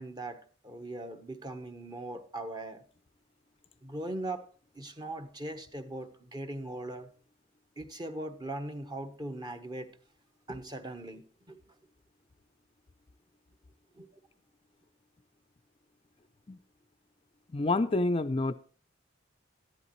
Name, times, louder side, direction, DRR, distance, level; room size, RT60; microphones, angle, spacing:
voice 1, 0.0-2.8 3.8-4.4 4.7-7.1 7.8-9.9 10.5-11.6 13.9-14.1, right 1 dB, 20° right, 1.0 m, -40 dB
voice 2, 17.5-18.5, left 2 dB, 30° left, 0.4 m, -28 dB
14.0 x 11.0 x 3.1 m
head